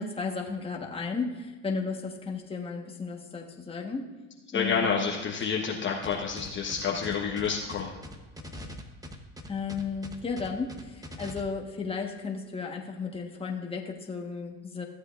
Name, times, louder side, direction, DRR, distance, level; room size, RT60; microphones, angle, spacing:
voice 1, 0.0-4.0 4.5-5.0 9.5-14.8, left 4 dB, 15° left, 0 dB, 1.4 m, -34 dB
voice 2, 4.5-7.9, left 6 dB, 35° left, -1 dB, 1.2 m, -29 dB
sound 1, 6.0-11.4, left 1 dB, 10° right, 1.0 m, -42 dB
14.5 x 7.9 x 2.6 m, 1.3 s
supercardioid pair, 100°, 35 cm